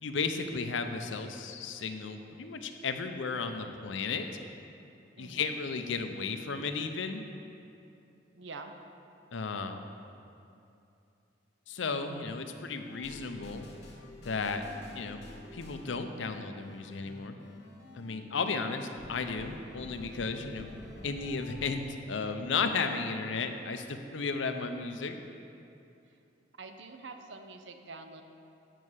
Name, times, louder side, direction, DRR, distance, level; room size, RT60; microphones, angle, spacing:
voice 1, 0.0-4.3 5.2-7.2 9.3-9.8 11.7-13.7 14.2-14.6 14.9-15.2 15.5-17.4 18.0-20.7 21.0-25.2, left 4 dB, 80° left, 7 dB, 0.6 m, -34 dB
voice 2, 5.2-5.6 8.3-8.7 26.1-26.2 26.6-28.2, right 3 dB, 70° right, 6 dB, 0.7 m, -46 dB
sound 1, 12.8-21.8, left 1 dB, 60° left, 1.7 m, -49 dB
9.1 x 5.5 x 6.3 m, 2.7 s
head